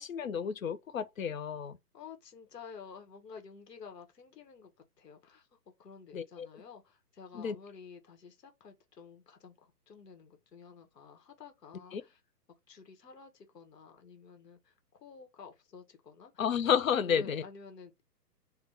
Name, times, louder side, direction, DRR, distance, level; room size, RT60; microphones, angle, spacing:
voice 1, 0.0-1.8 6.1-6.5 7.3-7.6 11.9-12.0 16.4-17.4, left 7 dB, 55° left, 0.5 m, -31 dB
voice 2, 1.9-4.7 5.0-5.5 5.8-12.2 12.7-14.7 15.0-16.3 17.0-18.1, left 5 dB, 75° left, 1.4 m, -51 dB
3.6 x 2.2 x 3.4 m
hypercardioid pair, 175°, 49 cm